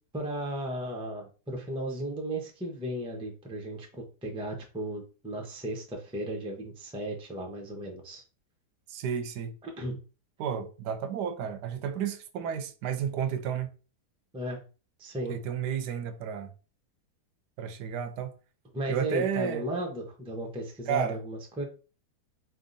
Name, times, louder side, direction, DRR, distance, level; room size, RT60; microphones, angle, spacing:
voice 1, 0.1-8.2 9.6-10.0 14.3-14.6 15.0-15.4 18.7-21.6, right 1 dB, 10° right, 0.3 m, -35 dB
voice 2, 8.9-9.6 10.4-13.7 15.3-16.5 17.6-18.3 18.9-19.7 20.9-21.2, right 8 dB, 80° right, 1.2 m, -32 dB
4.2 x 3.5 x 2.6 m
omnidirectional pair, 1.8 m